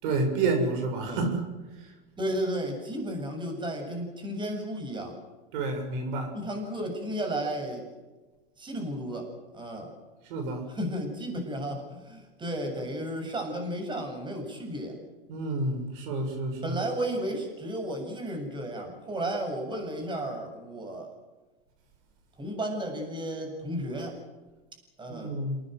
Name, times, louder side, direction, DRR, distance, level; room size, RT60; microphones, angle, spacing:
voice 1, 0.0-1.5 1.8-1.9 5.5-6.3 10.3-10.7 15.3-16.8 25.1-25.6, right 3 dB, 60° right, 5 dB, 7.2 m, -29 dB
voice 2, 2.2-5.2 6.3-7.9 8.6-9.3 9.5-9.9 10.7-15.0 16.6-21.1 22.4-24.1 25.0-25.4, right 1 dB, 15° right, 3 dB, 7.5 m, -33 dB
28.0 x 19.5 x 7.9 m, 1.2 s
hypercardioid pair, 120°, 29 cm